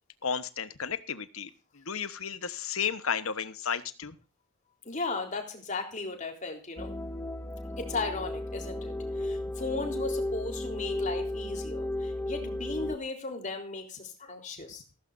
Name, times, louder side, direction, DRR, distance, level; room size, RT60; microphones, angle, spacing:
voice 1, 0.2-1.5 1.7-4.1, left 7 dB, 75° left, 13 dB, 1.2 m, -33 dB
voice 2, 4.8-7.0 7.8-15.0, left 3 dB, 35° left, 3 dB, 3.8 m, -36 dB
sound 1, 6.8-13.0, left 1 dB, 10° left, 0.6 m, -34 dB
16.0 x 15.0 x 2.7 m, 0.33 s
head